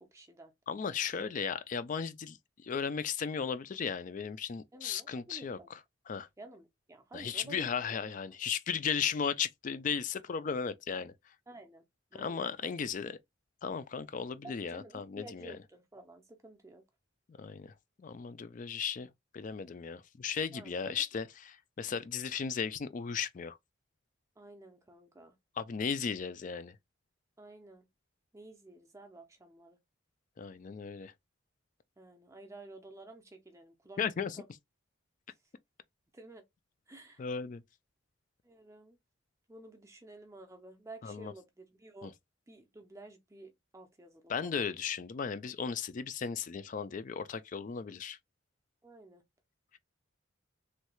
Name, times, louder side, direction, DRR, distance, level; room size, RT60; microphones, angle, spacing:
voice 1, 0.0-0.5 4.7-5.7 6.4-8.1 11.5-11.8 12.1-12.9 14.4-16.8 20.5-21.0 24.4-25.4 27.4-27.9 28.3-29.8 32.0-34.0 34.4-34.5 36.1-36.5 36.9-37.3 38.4-39.0 39.5-42.1 42.5-44.7 48.8-49.2, right 2 dB, 15° right, 0.5 m, -52 dB
voice 2, 0.7-2.4 2.6-5.8 6.1-6.3 7.1-11.1 12.2-13.2 13.6-15.6 17.3-17.7 18.0-19.1 19.3-23.6 25.6-26.8 30.4-31.1 34.0-34.4 37.2-37.6 41.0-41.3 42.0-42.1 44.3-48.2, left 6 dB, 40° left, 0.3 m, -36 dB
3.1 x 2.3 x 2.9 m
head